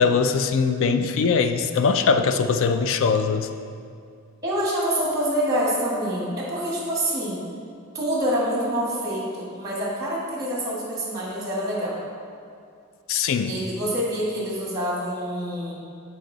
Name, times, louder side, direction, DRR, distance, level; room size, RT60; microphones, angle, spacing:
voice 1, 0.0-3.5 13.1-13.5, left 5 dB, 65° left, 8 dB, 0.4 m, -21 dB
voice 2, 4.4-7.4 7.9-12.0 13.4-15.7, equal, 15° right, -5 dB, 1.5 m, -26 dB
8.0 x 4.1 x 3.9 m, 2.3 s
head